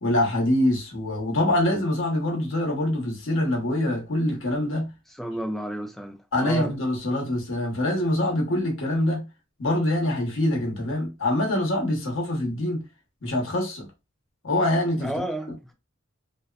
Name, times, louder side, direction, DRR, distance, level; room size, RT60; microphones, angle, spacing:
voice 1, 0.0-4.9 6.3-9.2 9.6-12.8 13.2-13.9 14.4-15.1, left 1 dB, 65° left, 1.0 m, -24 dB
voice 2, 5.1-6.7 14.9-15.6, right 1 dB, ahead, 0.4 m, -32 dB
2.7 x 2.1 x 2.4 m
head